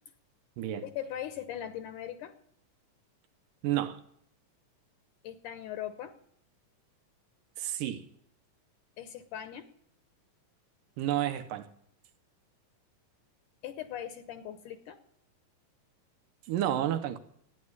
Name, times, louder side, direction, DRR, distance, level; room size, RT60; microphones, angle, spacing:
voice 1, 0.8-2.3 5.2-6.2 9.0-9.7 13.6-15.0, left 10 dB, 70° left, 2.2 m, -39 dB
voice 2, 3.6-4.0 7.6-8.1 11.0-11.7 16.5-17.2, right 12 dB, 75° right, 2.4 m, -30 dB
14.0 x 9.7 x 9.7 m
omnidirectional pair, 4.0 m